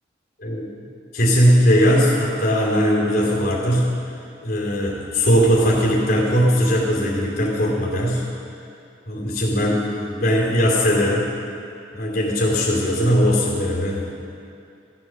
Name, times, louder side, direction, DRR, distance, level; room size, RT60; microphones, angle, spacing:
voice 1, 1.1-3.9 4.4-8.2 9.1-11.3 11.9-14.1, equal, 55° left, -4 dB, 2.7 m, -19 dB
14.0 x 7.6 x 6.2 m, 2.6 s
head